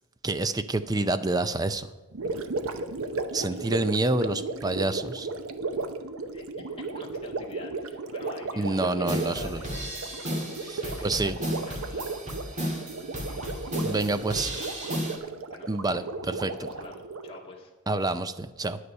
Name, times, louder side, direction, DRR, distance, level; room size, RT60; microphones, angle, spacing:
voice 1, 0.2-1.9 3.3-5.3 8.6-9.6 10.6-11.4 13.8-14.5 15.7-16.7 17.9-18.8, right 2 dB, 15° right, 12 dB, 0.4 m, -28 dB
Gurgling, 2.1-17.4, right 3 dB, 70° right, 0.7 m, -35 dB
voice 2, 3.3-3.8 6.3-9.7 10.2-11.2 11.5-12.7 13.3-14.2 15.5-15.7 16.6-17.7, left 2 dB, 25° left, -1 dB, 1.9 m, -46 dB
sound 1, 9.1-15.2, equal, 35° right, 2.2 m, -34 dB
9.7 x 9.5 x 5.4 m, 1.3 s
head